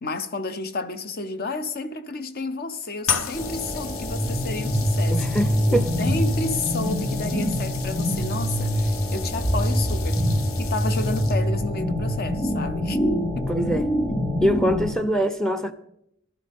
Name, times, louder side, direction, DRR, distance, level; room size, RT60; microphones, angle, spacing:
voice 1, 0.0-5.3 5.7-10.2 10.6-13.0 13.4-13.5, left 3 dB, 50° left, 0.8 m, -31 dB
sound 1, 3.0-11.6, left 7 dB, 80° left, 0.8 m, -35 dB
sound 2, 3.3-14.9, equal, 25° left, 5.3 m, -25 dB
voice 2, 5.1-5.9 13.5-13.9 14.4-15.7, equal, 5° left, 0.6 m, -23 dB
15.0 x 12.0 x 3.6 m
head